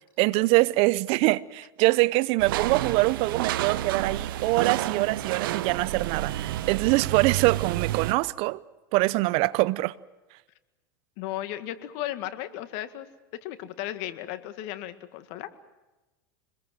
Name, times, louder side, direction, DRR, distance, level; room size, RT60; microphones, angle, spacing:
voice 1, 0.2-8.6 8.9-9.9, right 21 dB, 55° right, 0.8 m, -24 dB
sound 1, 2.4-8.1, right 14 dB, 70° right, 1.1 m, -30 dB
voice 2, 11.2-13.1 13.4-15.5, left 13 dB, 60° left, 1.9 m, -35 dB
26.0 x 21.0 x 7.7 m
hypercardioid pair, 100°, 12 cm